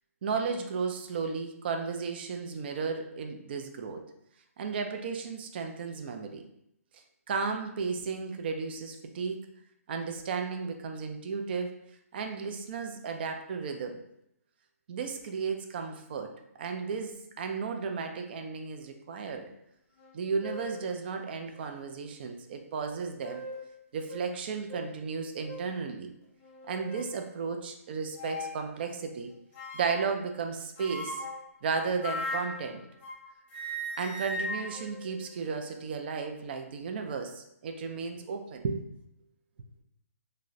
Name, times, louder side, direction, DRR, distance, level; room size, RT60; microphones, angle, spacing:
voice 1, 0.2-4.0 4.6-6.4 6.9-9.4 9.9-11.7 12.1-14.0 14.9-16.3 16.6-19.5 20.1-23.4 23.9-26.1 26.7-29.3 29.7-31.2 31.6-32.8 34.0-38.8, right 5 dB, 40° right, 5 dB, 0.3 m, -34 dB
sound 1, 20.0-20.1 20.4-20.8 21.5-21.6 22.9-23.7 24.1-24.2 24.7-24.9 25.5-25.8 26.4-27.2 28.2-28.6 29.5-30.1 30.8-33.2 33.5-35.8, left 1 dB, 20° left, 0.7 m, -39 dB
3.6 x 2.0 x 2.5 m, 0.77 s
hypercardioid pair, 155°, 8 cm